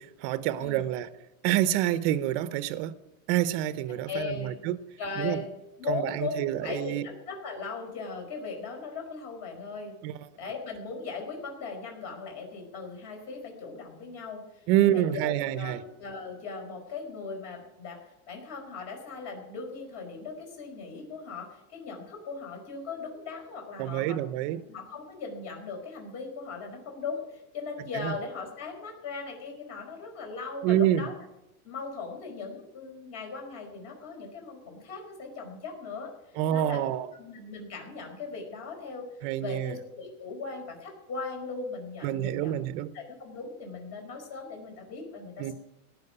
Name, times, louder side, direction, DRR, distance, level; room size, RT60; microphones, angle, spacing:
voice 1, 0.2-1.1 1.4-2.9 3.3-4.8 5.2-5.4 5.9-7.1 10.0-10.2 14.7-15.8 23.8-24.6 27.9-28.1 30.6-31.1 36.4-37.1 39.2-39.8 42.0-42.9 45.4-45.5, right 12 dB, 45° right, 0.9 m, -27 dB
voice 2, 4.1-4.6 5.0-5.5 5.8-6.3 6.6-9.9 10.4-18.0 18.3-24.2 24.5-31.1 31.6-36.1 36.5-36.8 37.2-39.1 39.4-42.6 42.9-45.5, left 4 dB, 35° left, 5.0 m, -38 dB
18.0 x 6.4 x 9.9 m
supercardioid pair, 155°, 43 cm